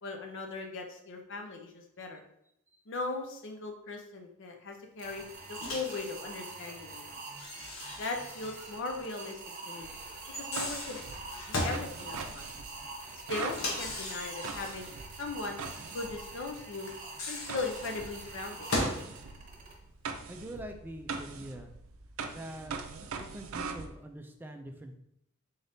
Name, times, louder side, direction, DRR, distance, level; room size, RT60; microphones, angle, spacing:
voice 1, 0.0-2.2 2.9-5.2 5.5-7.1 8.0-9.9 10.4-12.5 13.1-14.9 15.2-15.6 15.9-16.9 17.3-18.7, left 3 dB, 65° left, 3 dB, 0.6 m, -39 dB
sound 1, 5.0-19.7, right 3 dB, 40° right, 0.9 m, -45 dB
Microwave oven, 5.6-6.0 7.4-8.7 9.0-9.1 10.2-11.9 13.5-14.9 16.9-19.1, left 1 dB, 85° left, 0.9 m, -37 dB
sound 2, 9.8-16.6 17.5-23.9, right 5 dB, 90° right, 0.4 m, -42 dB
voice 2, 20.3-21.7 22.3-24.9, right 1 dB, 10° right, 5 dB, 0.3 m, -44 dB
3.8 x 3.4 x 2.7 m, 0.77 s
head